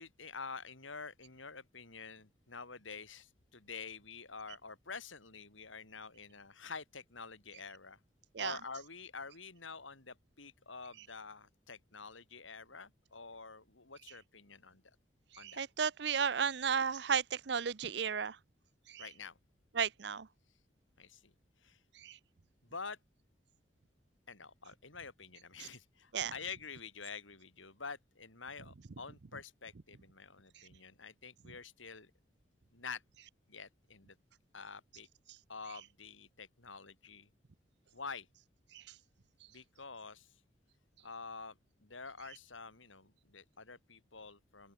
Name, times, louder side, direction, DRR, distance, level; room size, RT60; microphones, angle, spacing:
voice 1, 0.0-8.0 8.4-14.8 15.4-15.6 19.0-19.4 21.0-21.3 21.6-21.8 22.6-23.0 24.3-32.1 32.7-33.0 33.5-34.2 34.5-35.1 35.5-37.3 37.9-38.3 39.5-40.3 41.0-44.7, left 5 dB, 90° left, 4.2 m, -48 dB
voice 2, 15.4-18.4 18.9-19.0 19.7-20.3 22.0-22.2 25.6-25.7 26.1-26.3 38.7-38.8, right 7 dB, 60° right, 0.6 m, -34 dB
head